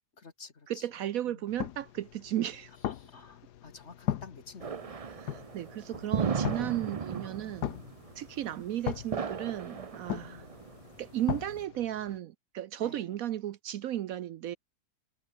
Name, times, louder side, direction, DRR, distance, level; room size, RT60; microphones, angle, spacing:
voice 1, 0.2-0.9 1.2-1.4 2.8-5.0 5.9-6.1 7.7-8.0 10.2-10.6 12.8-13.2, left 4 dB, 45° left, 2.3 m, -51 dB
voice 2, 0.7-2.7 5.1-7.7 8.2-10.4 11.0-14.6, right 12 dB, 70° right, 1.0 m, -35 dB
sound 1, 1.5-12.2, left 11 dB, 85° left, 1.5 m, -40 dB
sound 2, 4.6-11.6, right 6 dB, 50° right, 0.4 m, -36 dB
omnidirectional pair, 1.7 m